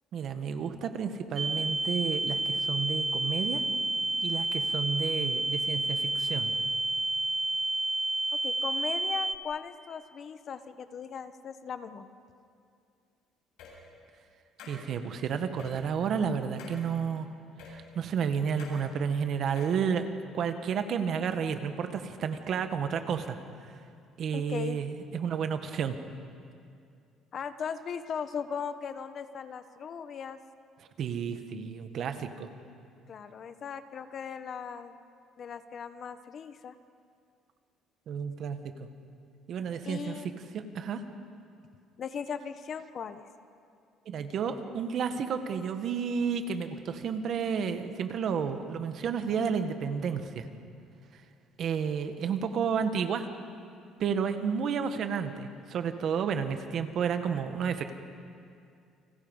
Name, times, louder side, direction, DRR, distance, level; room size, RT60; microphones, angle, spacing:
voice 1, 0.1-3.6 4.2-6.5 14.7-17.3 17.7-20.1 20.3-23.4 24.2-26.0 31.0-32.5 38.1-38.9 39.5-41.0 44.0-50.5 51.6-53.3 54.0-57.9, right 6 dB, 50° right, 8 dB, 1.6 m, -31 dB
sound 1, 1.4-9.4, right 2 dB, 20° right, 0.9 m, -30 dB
voice 2, 8.3-12.1 24.3-24.8 27.3-30.4 33.1-35.0 35.4-36.7 39.9-40.3 42.0-43.2, left 7 dB, 40° left, 11 dB, 1.0 m, -38 dB
sound 2, 13.6-13.7 14.6-14.8 15.6-15.7 16.6-16.8 17.6-17.7 18.6-18.8 19.5-19.8, left 6 dB, 85° left, 7.3 m, -47 dB
30.0 x 25.0 x 5.6 m, 2.4 s
cardioid pair, 150°, 0 cm